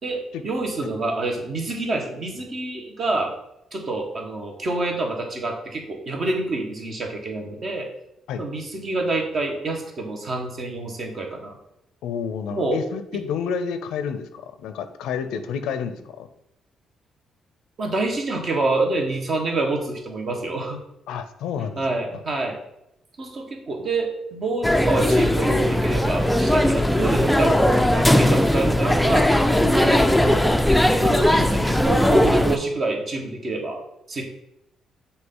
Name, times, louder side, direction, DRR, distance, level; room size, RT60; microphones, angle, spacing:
voice 1, 0.0-3.3 3.7-7.9 8.4-11.5 12.5-12.8 17.8-20.8 21.6-22.6 23.2-29.3 29.6-30.5 30.8-33.8 34.1-34.2, right 2 dB, 50° right, 2 dB, 1.4 m, -27 dB
voice 2, 12.0-16.3 21.1-21.8, left 7 dB, 90° left, 9 dB, 0.5 m, -29 dB
sound 1, 24.6-32.6, left 1 dB, 5° left, 0.4 m, -19 dB
6.4 x 2.8 x 5.5 m, 0.82 s
cardioid pair, 90°, 0 cm